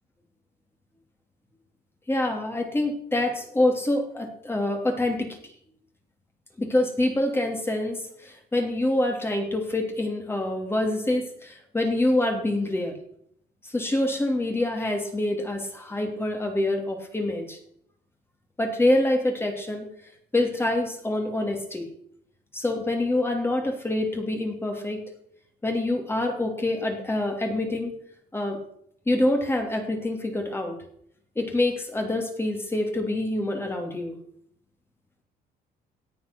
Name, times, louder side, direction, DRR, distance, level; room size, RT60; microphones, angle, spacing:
voice 1, 2.1-5.4 6.6-13.0 13.6-17.6 18.6-19.8 20.3-21.9 22.5-25.0 25.6-28.0 28.3-28.6 29.1-30.8 31.4-34.1, left 1 dB, 15° left, 3 dB, 2.9 m, -26 dB
17.5 x 8.2 x 6.1 m, 0.68 s
cardioid pair, 110°, 17 cm